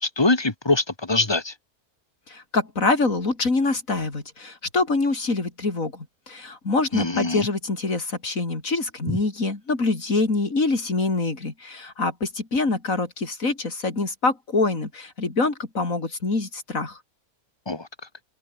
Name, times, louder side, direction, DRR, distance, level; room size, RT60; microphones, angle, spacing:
voice 1, 0.0-1.5 6.9-7.5 9.1-9.2 17.7-17.9, left 2 dB, 15° left, 2.0 m, -23 dB
voice 2, 2.3-17.0, left 3 dB, 65° left, 4.3 m, -25 dB
omnidirectional pair, 1.6 m